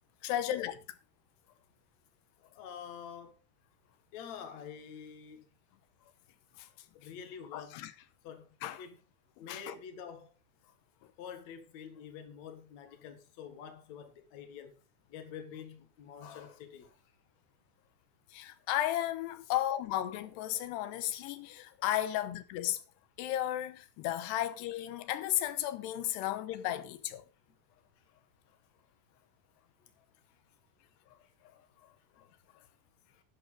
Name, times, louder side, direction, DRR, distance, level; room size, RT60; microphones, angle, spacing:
voice 1, 0.2-0.8 6.6-6.7 7.5-7.9 8.6-8.8 9.4-9.8 18.3-22.8 23.2-27.2, left 13 dB, 90° left, 3.1 m, -34 dB
voice 2, 2.4-3.3 4.1-5.4 6.9-7.8 8.2-8.5 8.8-9.0 9.4-10.3 11.2-14.7 15.1-17.0 33.1-33.2, left 7 dB, 50° left, 2.7 m, -47 dB
11.5 x 10.5 x 4.0 m
omnidirectional pair, 4.8 m